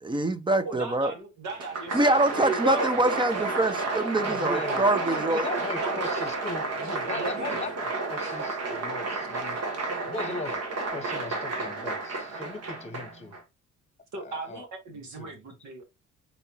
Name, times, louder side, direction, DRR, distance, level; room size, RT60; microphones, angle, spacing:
voice 1, 0.0-1.1 1.9-5.4, right 2 dB, 15° right, 0.5 m, -25 dB
voice 2, 0.6-3.0 5.8-6.0 6.8-7.6 8.2-8.4 14.1-15.8, right 3 dB, 70° right, 1.7 m, -39 dB
Applause, 1.5-13.4, right 3 dB, 55° right, 1.3 m, -31 dB
voice 3, 4.2-9.6 10.0-13.3 14.2-14.6 15.2-15.3, left 3 dB, 20° left, 1.1 m, -38 dB
4.0 x 3.3 x 3.0 m
cardioid pair, 90°, 30 cm